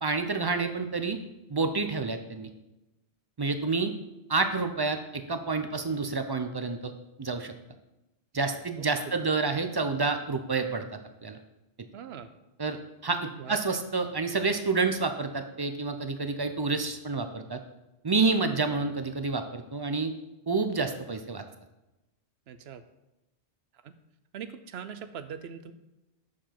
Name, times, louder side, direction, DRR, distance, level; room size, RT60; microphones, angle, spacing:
voice 1, 0.0-1.2 1.5-2.5 3.4-3.9 4.3-6.9 7.2-7.5 8.3-10.9 11.2-11.4 12.6-17.6 18.0-20.1 20.5-21.4, right 4 dB, 45° right, 7 dB, 0.3 m, -29 dB
voice 2, 8.6-9.3 11.9-12.3 13.2-13.6 22.5-22.8 23.7-23.9 24.3-25.7, right 7 dB, 70° right, 11 dB, 0.8 m, -42 dB
6.9 x 4.9 x 5.8 m, 0.98 s
omnidirectional pair, 1.1 m